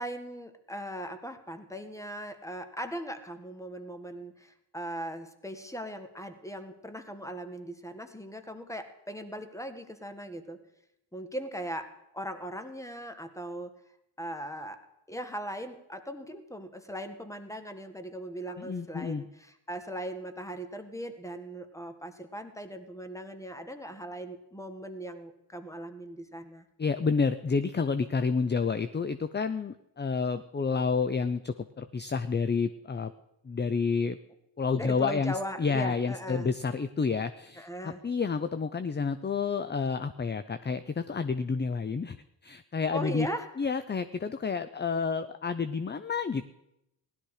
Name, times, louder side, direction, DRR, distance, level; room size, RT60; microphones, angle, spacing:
voice 1, 0.0-10.6 11.1-13.7 14.2-14.8 15.1-26.6 34.7-36.5 37.6-38.0 42.9-43.5, equal, 5° left, 8 dB, 1.7 m, -39 dB
voice 2, 18.6-19.2 26.8-33.1 33.4-34.2 34.6-42.2 42.4-43.3 43.6-46.5, left 5 dB, 25° left, 12 dB, 0.6 m, -29 dB
16.0 x 12.0 x 4.9 m, 0.85 s
cardioid pair, 60°, 47 cm